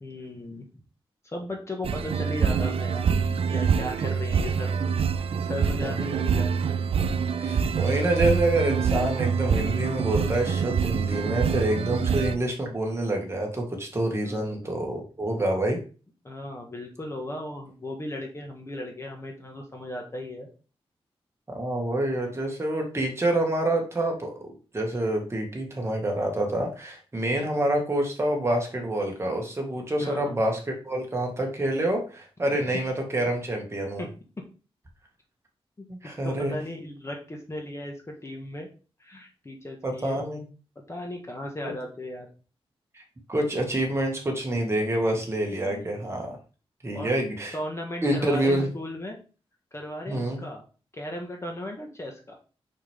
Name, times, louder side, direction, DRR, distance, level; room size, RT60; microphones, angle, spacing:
voice 1, 0.0-0.7 1.2-5.1 5.4-6.9 14.2-14.7 16.2-20.5 30.0-30.5 32.5-32.6 34.0-34.1 36.0-38.7 39.0-40.2 40.9-42.3 45.6-45.9 46.9-47.1 47.5-49.2 49.7-50.6 50.9-52.4, left 1 dB, 25° left, 1 dB, 1.7 m, -37 dB
sound 1, 1.8-12.4, right 6 dB, 70° right, 0.5 m, -25 dB
voice 2, 7.4-15.8 21.5-34.0 35.9-36.5 39.8-40.4 42.9-43.0 43.3-46.4 46.8-47.6 48.0-48.7 50.1-50.4, right 1 dB, 25° right, 1 dB, 2.1 m, -27 dB
6.4 x 6.2 x 3.6 m, 0.35 s
wide cardioid pair, 125°, 10 cm